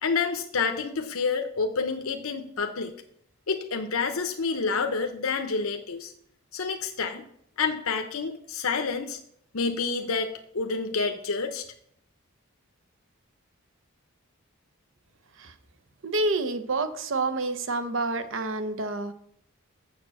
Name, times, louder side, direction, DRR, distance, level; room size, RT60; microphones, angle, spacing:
voice 1, 0.0-2.9 3.5-6.1 6.5-7.3 7.6-9.2 9.5-11.6, left 4 dB, 75° left, 6 dB, 0.8 m, -28 dB
voice 2, 16.0-19.1, right 2 dB, 60° right, 10 dB, 0.8 m, -28 dB
7.5 x 6.7 x 6.3 m, 0.69 s
head